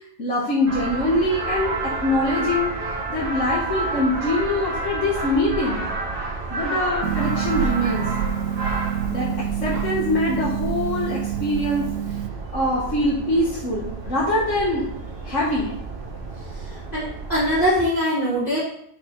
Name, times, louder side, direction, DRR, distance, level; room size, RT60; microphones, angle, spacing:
voice 1, 0.2-2.7 3.1-5.8 6.5-8.1 9.1-11.9 12.5-14.9 15.2-15.7, left 1 dB, 70° left, -5 dB, 1.9 m, -23 dB
sound 1, 0.7-17.7, right 3 dB, 55° right, 1.7 m, -31 dB
Harp, 7.0-12.3, right 9 dB, 85° right, 1.0 m, -27 dB
voice 2, 16.4-18.6, equal, 40° left, -11 dB, 3.9 m, -23 dB
5.7 x 5.5 x 5.5 m, 0.71 s
omnidirectional pair, 1.3 m